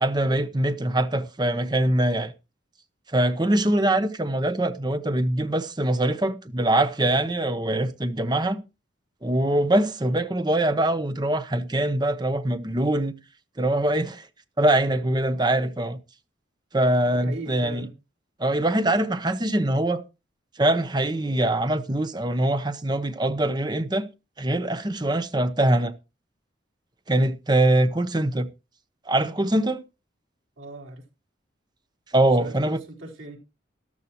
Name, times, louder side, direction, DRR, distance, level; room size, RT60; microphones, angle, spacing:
voice 1, 0.0-2.3 3.1-8.6 9.2-13.1 13.6-14.3 14.6-16.0 16.7-17.9 18.4-20.0 20.6-24.1 24.4-25.9 27.1-28.5 29.1-29.8 32.1-32.8, right 1 dB, 20° right, 0.9 m, -23 dB
voice 2, 17.1-18.0 30.6-31.0 32.4-33.4, right 2 dB, 85° right, 4.0 m, -39 dB
13.5 x 12.5 x 3.0 m
head